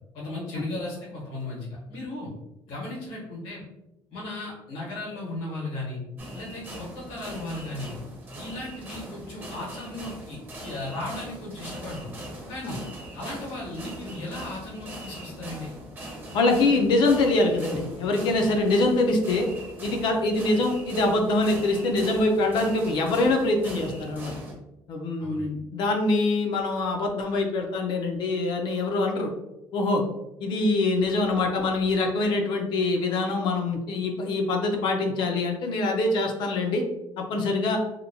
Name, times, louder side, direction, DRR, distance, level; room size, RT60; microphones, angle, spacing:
voice 1, 0.1-2.3 2.7-3.6 4.1-6.0 6.3-7.9 8.4-12.1 12.5-12.8 13.1-15.7 25.2-25.5, left 2 dB, 85° left, -4 dB, 1.3 m, -36 dB
sound 1, 6.2-24.5, right 1 dB, 20° right, 0.6 m, -40 dB
voice 2, 16.3-19.5 19.8-24.3 24.9-29.3 29.7-30.0 30.4-36.8 37.2-37.8, left 2 dB, 60° left, 3 dB, 0.5 m, -24 dB
2.8 x 2.2 x 2.6 m, 0.95 s
cardioid pair, 150°, 9 cm